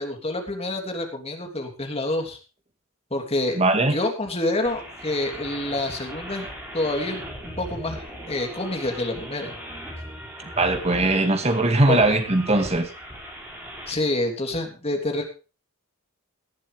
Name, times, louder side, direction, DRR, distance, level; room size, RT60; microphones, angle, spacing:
voice 1, 0.0-2.4 3.1-6.4 6.7-9.6 11.9-12.0 13.9-15.3, left 2 dB, 30° left, 4 dB, 3.1 m, -27 dB
voice 2, 3.6-4.0 10.6-12.9, right 2 dB, 30° right, 7 dB, 2.2 m, -20 dB
sound 1, 4.7-13.9, equal, 10° right, 5.5 m, -38 dB
18.0 x 11.0 x 3.4 m, 0.33 s
head